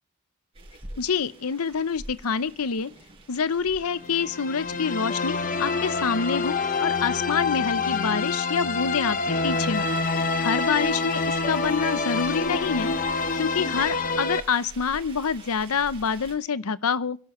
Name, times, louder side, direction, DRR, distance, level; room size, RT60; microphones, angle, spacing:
sound 1, 0.5-16.4, right 2 dB, 25° right, 5.8 m, -47 dB
voice 1, 1.0-2.9 3.3-6.5 6.8-9.2 9.4-9.9 10.4-12.9 13.3-17.2, left 6 dB, 80° left, 17 dB, 0.7 m, -26 dB
sound 2, 4.0-14.4, left 4 dB, 35° left, 0.9 m, -26 dB
27.0 x 12.0 x 3.1 m, 0.41 s
head